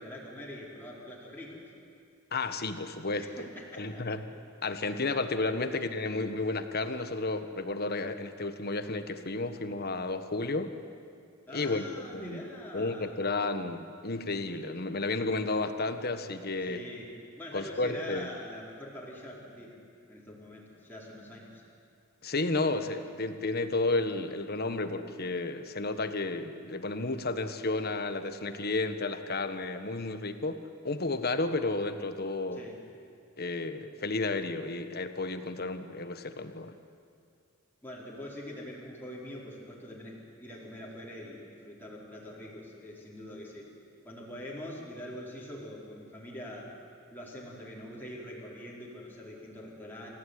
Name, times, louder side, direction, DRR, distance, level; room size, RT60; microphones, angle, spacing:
voice 1, 0.0-1.7 3.2-4.2 5.6-5.8 11.5-13.2 16.6-19.8 20.1-21.6 32.5-32.8 37.8-43.7 44.0-46.7 47.1-50.1, left 1 dB, 10° left, -5 dB, 4.5 m, -44 dB
voice 2, 2.3-3.5 3.8-4.2 4.6-10.7 11.5-12.4 12.7-16.8 17.5-18.3 22.2-32.6 33.4-36.7, left 3 dB, 50° left, 9 dB, 1.4 m, -32 dB
28.0 x 15.5 x 9.7 m, 2.4 s
head